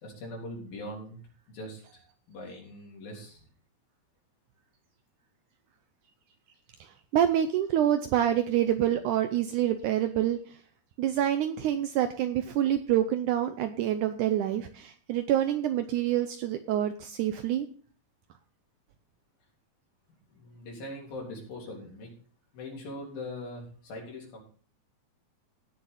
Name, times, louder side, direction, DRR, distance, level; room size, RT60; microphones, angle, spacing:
voice 1, 0.0-1.2 1.5-2.0 2.3-3.4 20.3-22.1 22.5-24.4, left 1 dB, 75° left, -2 dB, 5.4 m, -41 dB
voice 2, 6.8-10.4 11.0-17.7, right 11 dB, 80° right, 9 dB, 1.8 m, -27 dB
17.0 x 6.8 x 4.0 m, 0.43 s
omnidirectional pair, 4.2 m